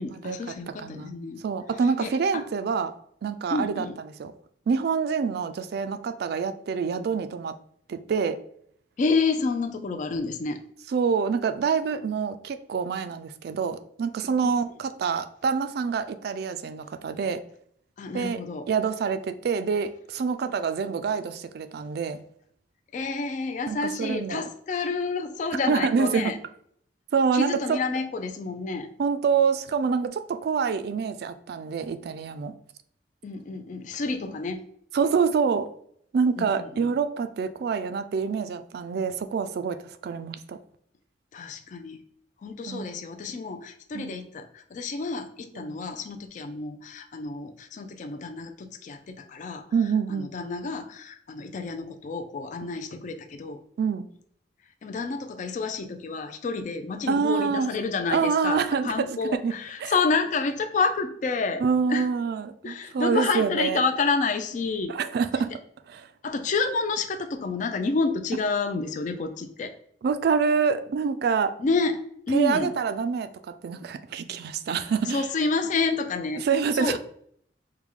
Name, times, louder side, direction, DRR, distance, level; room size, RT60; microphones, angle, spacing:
voice 1, 0.0-1.4 2.0-2.4 3.5-4.0 9.0-10.6 18.0-18.7 22.9-26.4 27.3-28.9 33.2-34.6 36.4-36.7 41.3-42.0 42.4-49.6 50.1-53.6 54.8-61.6 61.9-62.1 62.6-64.9 66.2-69.7 71.6-72.7 74.7-76.5 76.7-77.0, left 4 dB, 45° left, 7 dB, 0.3 m, -29 dB
voice 2, 0.7-1.1 1.4-2.9 3.2-3.9 4.2-4.3 4.7-7.6 7.9-8.4 10.9-17.4 18.1-18.4 18.7-22.2 23.7-24.4 25.7-26.4 27.1-27.8 29.0-32.5 34.9-35.7 36.1-40.6 42.7-43.0 43.9-44.2 45.6-45.8 49.7-50.3 53.8-54.1 57.1-57.7 58.1-59.5 59.8-59.9 61.6-63.8 64.9-65.5 65.9-66.1 70.0-71.5 72.3-75.2 76.4-77.0, right 5 dB, 65° right, 10 dB, 0.3 m, -26 dB
4.7 x 2.2 x 3.5 m, 0.64 s
head